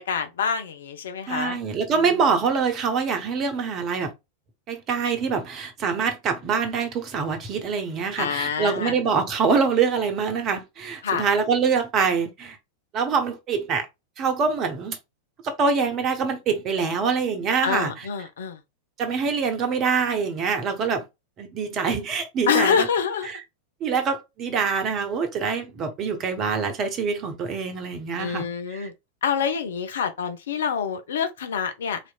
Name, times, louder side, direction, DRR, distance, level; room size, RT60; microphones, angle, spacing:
voice 1, 0.0-1.6 8.2-8.9 11.0-11.3 17.6-18.6 22.5-23.3 28.2-28.9 29.2-32.0, left 7 dB, 60° left, 0.6 m, -26 dB
voice 2, 1.3-4.1 4.7-12.6 12.9-13.9 14.2-15.0 15.4-18.1 19.0-21.1 21.4-22.9 23.3-23.4 23.8-28.9, right 5 dB, 30° right, 1.1 m, -25 dB
4.1 x 3.0 x 2.3 m
figure-of-eight pair, 90°, 0 cm